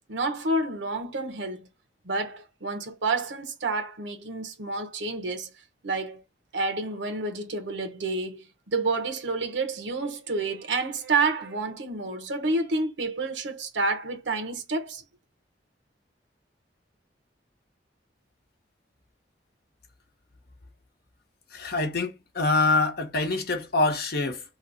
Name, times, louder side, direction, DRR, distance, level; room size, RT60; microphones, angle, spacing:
voice 1, 0.1-1.7 2.0-5.5 5.8-6.2 6.5-15.0, right 3 dB, 85° right, 0.9 m, -29 dB
voice 2, 21.5-24.4, left 3 dB, 60° left, 0.9 m, -25 dB
3.1 x 2.0 x 3.9 m
head